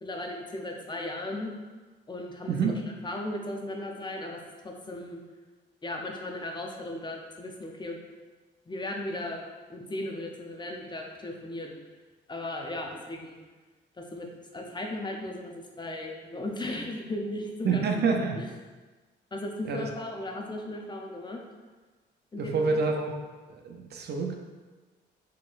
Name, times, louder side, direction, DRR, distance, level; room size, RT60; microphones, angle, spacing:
voice 1, 0.0-1.5 2.1-2.7 3.0-4.4 4.6-5.2 5.8-8.0 8.7-9.4 9.7-11.7 12.3-13.4 14.0-14.3 14.5-17.9 18.4-18.5 19.3-21.4 22.3-22.8, left 1 dB, 20° left, 1 dB, 0.6 m, -36 dB
voice 2, 17.6-18.4 19.6-19.9 22.4-23.2 23.5-24.4, right 4 dB, 55° right, 3 dB, 0.6 m, -27 dB
4.2 x 4.2 x 2.5 m, 1.3 s
cardioid pair, 90°, 20 cm